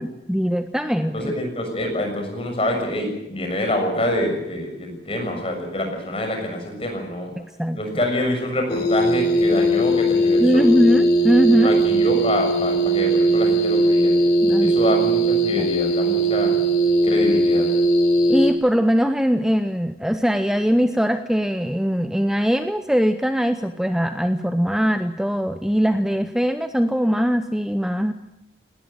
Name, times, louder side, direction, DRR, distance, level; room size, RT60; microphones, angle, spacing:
voice 1, 0.0-1.3 7.4-7.8 10.4-11.8 14.4-14.7 15.6-15.7 18.3-28.1, equal, 5° right, 8 dB, 0.7 m, -21 dB
voice 2, 1.1-7.3 7.7-10.7 11.5-14.2 14.6-16.6 17.0-17.7, left 1 dB, 30° left, 3 dB, 6.7 m, -26 dB
sound 1, 8.7-18.5, right 1 dB, 65° left, 3.8 m, -19 dB
19.5 x 19.0 x 9.2 m, 0.91 s
head